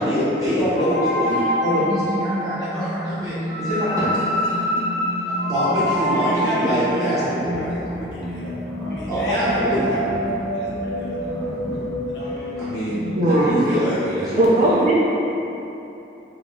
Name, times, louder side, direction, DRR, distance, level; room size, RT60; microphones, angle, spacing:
voice 1, 0.0-4.3 5.4-7.8 9.1-9.8 12.6-14.8, equal, 20° right, -12 dB, 1.3 m, -24 dB
sound 1, 0.7-13.5, equal, 40° left, 1.1 m, -26 dB
voice 2, 6.1-10.1 10.3-11.2 12.0-12.5 13.8-14.1, left 1 dB, 70° left, -6 dB, 0.7 m, -33 dB
sound 2, 7.4-13.1, equal, 25° left, 0.6 m, -37 dB
voice 3, 13.2-13.5 14.4-15.0, right 1 dB, 40° right, -6 dB, 0.4 m, -18 dB
3.6 x 2.3 x 3.6 m, 3.0 s
head